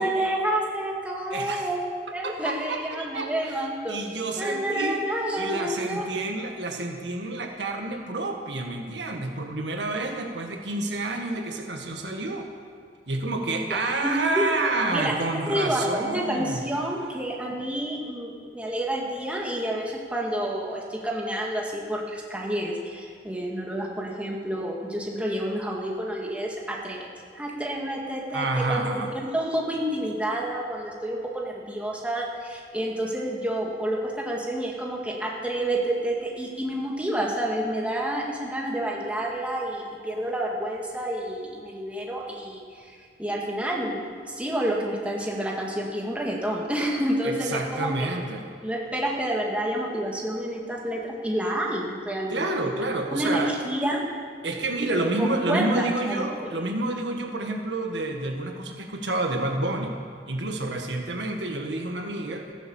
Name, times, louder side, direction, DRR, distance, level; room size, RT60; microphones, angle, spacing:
voice 1, 0.0-4.0 4.4-6.0 13.5-14.4 14.9-15.1 15.5-27.1 27.3-29.0 29.3-47.9 48.6-52.7 53.1-54.0 54.8-56.2, right 1 dB, 10° right, -2 dB, 2.1 m, -29 dB
voice 2, 1.3-1.6 2.2-3.6 3.9-5.0 5.4-12.5 13.1-16.6 28.3-29.1 47.2-48.4 52.3-53.5 54.4-59.9 60.3-62.5, right 2 dB, 85° right, 3 dB, 1.7 m, -29 dB
14.5 x 11.0 x 7.2 m, 2.1 s
head